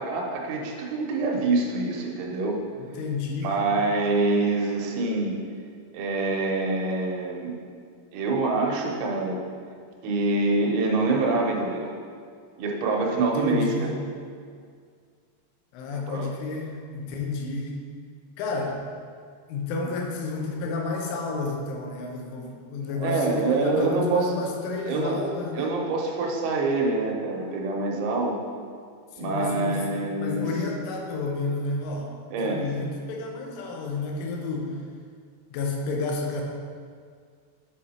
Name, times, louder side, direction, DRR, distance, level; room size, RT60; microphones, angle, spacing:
voice 1, 0.0-2.6 3.4-5.4 5.9-7.6 8.1-9.4 10.0-11.9 12.6-13.9 15.9-16.3 19.8-19.9 23.0-24.4 24.9-25.2 25.5-28.4 29.2-30.5 32.3-32.7, right 3 dB, 80° right, 0 dB, 3.3 m, -25 dB
voice 2, 2.8-3.6 13.2-13.9 15.7-17.8 18.4-18.8 19.5-25.7 29.1-32.1 32.4-34.8 35.5-36.4, left 3 dB, 90° left, 0 dB, 3.4 m, -31 dB
8.4 x 4.8 x 4.2 m, 2.1 s
omnidirectional pair, 5.4 m